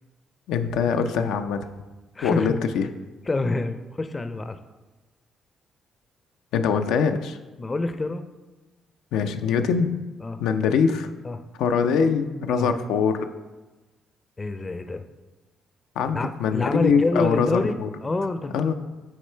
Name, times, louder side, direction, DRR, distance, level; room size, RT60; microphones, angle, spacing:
voice 1, 0.5-1.7 2.2-2.9 6.5-7.4 9.1-9.9 10.4-11.1 11.6-13.3 16.0-17.9 18.5-18.7, left 6 dB, 90° left, 7 dB, 0.4 m, -23 dB
voice 2, 2.1-2.6 3.3-4.6 7.6-8.3 10.2-10.4 11.2-11.4 12.5-12.7 14.4-15.1 16.1-18.7, left 2 dB, 25° left, 9 dB, 0.4 m, -27 dB
6.4 x 3.7 x 4.4 m, 1.1 s
cardioid pair, 90°, 0 cm